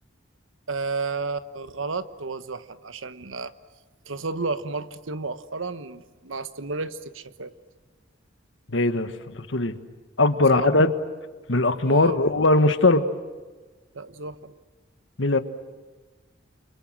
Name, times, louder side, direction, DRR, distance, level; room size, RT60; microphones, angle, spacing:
voice 1, 0.7-3.5 4.1-7.5 10.5-10.9 11.8-12.2 13.9-14.5, right 3 dB, 80° right, 12 dB, 1.2 m, -32 dB
voice 2, 8.7-9.7 10.2-10.9 11.5-13.0 15.2-15.4, left 2 dB, 70° left, 9 dB, 1.5 m, -20 dB
29.0 x 25.0 x 7.5 m, 1.3 s
head